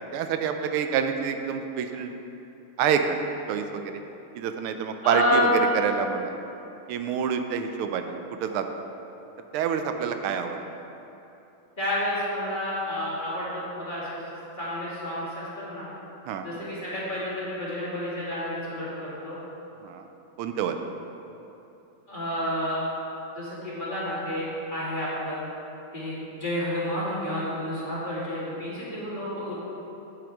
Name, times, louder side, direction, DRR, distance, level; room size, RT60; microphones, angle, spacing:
voice 1, 0.0-2.1 2.8-3.2 3.5-3.9 4.4-5.5 5.7-6.4 6.9-8.1 8.4-8.7 9.5-10.6 16.3-16.5 19.8-20.0 20.4-20.8, right 7 dB, 85° right, 6 dB, 1.5 m, -27 dB
voice 2, 5.0-5.8 11.8-14.2 14.6-15.8 16.4-19.4 22.1-22.8 23.3-25.4 25.9-29.5, left 1 dB, 20° left, -9 dB, 2.4 m, -29 dB
9.0 x 7.9 x 4.7 m, 2.9 s
omnidirectional pair, 2.3 m